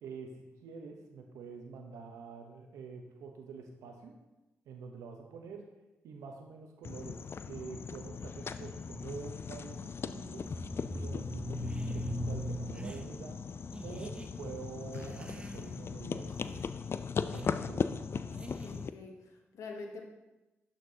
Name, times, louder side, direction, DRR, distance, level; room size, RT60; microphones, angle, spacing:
voice 1, 0.0-4.1 4.7-5.6 6.0-7.2 7.5-10.5 10.9-13.4 13.8-16.7 17.3-17.9, right 5 dB, 85° right, 3 dB, 0.8 m, -46 dB
sound 1, 6.8-18.9, left 6 dB, 50° left, 0.3 m, -39 dB
sound 2, 8.3-13.5, left 1 dB, 30° left, 1.1 m, -39 dB
sound 3, 11.5-12.2 12.7-13.1 13.7-14.3 14.9-15.9 16.3-16.7 17.3-17.6 18.3-18.9, right 2 dB, 20° right, 0.7 m, -47 dB
voice 2, 18.5-20.1, left 3 dB, 75° left, 2 dB, 1.1 m, -46 dB
11.5 x 4.4 x 2.8 m, 1.0 s
supercardioid pair, 40°, 5 cm